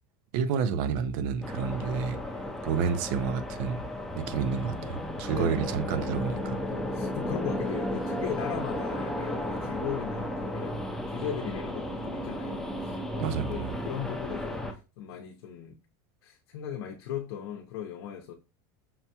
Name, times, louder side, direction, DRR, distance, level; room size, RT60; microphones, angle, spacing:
voice 1, 0.3-2.2 2.6-3.8 4.2-6.6 13.2-13.7, right 6 dB, 60° right, 0.5 m, -29 dB
sound 1, 1.4-14.7, left 1 dB, ahead, 0.4 m, -34 dB
voice 2, 5.3-5.6 6.9-14.6 15.0-15.8 16.2-18.3, left 9 dB, 85° left, 0.7 m, -38 dB
5.6 x 2.2 x 2.8 m
supercardioid pair, 150°, 13 cm